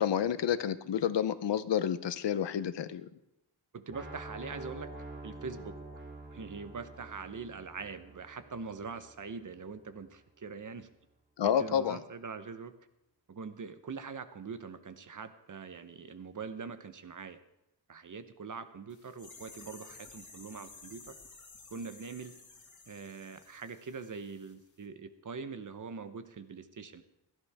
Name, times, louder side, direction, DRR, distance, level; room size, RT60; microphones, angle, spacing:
voice 1, 0.0-3.1 11.4-12.0, left 9 dB, 80° left, 13 dB, 0.8 m, -29 dB
voice 2, 3.7-4.9 5.2-5.8 6.3-10.9 11.4-12.7 13.3-17.4 17.9-21.1 21.7-22.3 22.9-27.0, right 5 dB, 45° right, 10 dB, 0.9 m, -43 dB
sound 1, 3.9-9.8, right 2 dB, 25° right, 2.6 m, -47 dB
sound 2, 18.9-24.5 24.8-24.9, left 3 dB, 45° left, 2.0 m, -53 dB
16.0 x 13.0 x 3.5 m, 0.86 s
wide cardioid pair, 155°, 42 cm